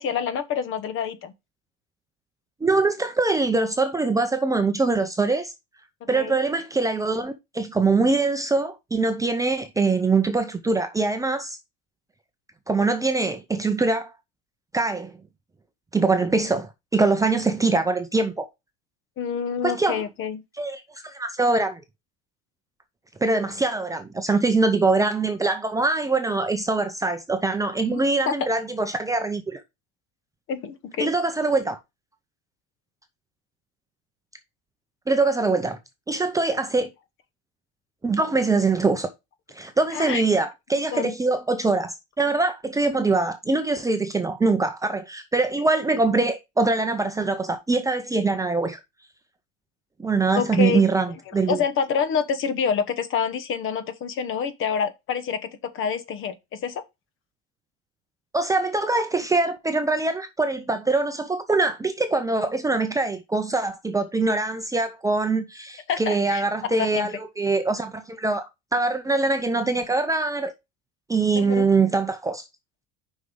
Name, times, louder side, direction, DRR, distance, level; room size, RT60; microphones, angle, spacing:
voice 1, 0.0-1.3 6.1-6.4 19.2-20.4 27.9-28.0 28.3-28.4 30.5-31.1 39.9-40.2 40.9-41.1 50.3-50.8 51.3-55.5 55.7-56.8 65.9-66.4 66.7-67.1 71.3-71.7, left 7 dB, 40° left, 1.1 m, -27 dB
voice 2, 2.6-5.5 6.1-11.6 12.7-14.1 14.7-15.1 15.9-18.5 19.6-20.0 20.6-21.8 23.2-29.6 31.0-31.8 35.1-35.8 36.1-36.9 38.0-39.1 39.5-48.8 50.0-51.6 58.3-68.4 68.7-70.5 71.1-72.4, right 3 dB, 10° right, 0.6 m, -23 dB
6.4 x 5.5 x 3.8 m
supercardioid pair, 135°, 32 cm